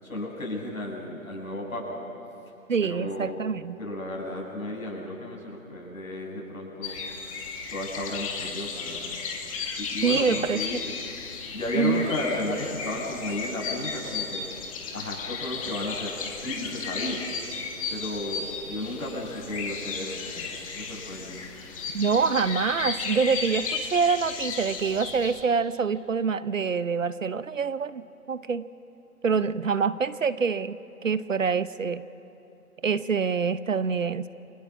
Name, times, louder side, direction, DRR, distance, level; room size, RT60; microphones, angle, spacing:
voice 1, 0.0-2.0 2.9-3.4 3.8-7.0 7.7-9.2 9.8-10.9 11.5-14.4 14.9-16.1 16.4-17.2 17.9-20.5 20.7-21.4, left 1 dB, 65° left, -2 dB, 7.8 m, -33 dB
voice 2, 2.7-3.8 10.0-10.8 11.7-12.1 21.9-28.6 29.2-30.8 31.0-32.0 32.8-34.3, right 5 dB, 60° right, 15 dB, 0.9 m, -26 dB
sound 1, 6.8-25.4, left 5 dB, 25° left, 1.9 m, -34 dB
29.5 x 23.5 x 6.2 m, 2.8 s
figure-of-eight pair, 140°, 44 cm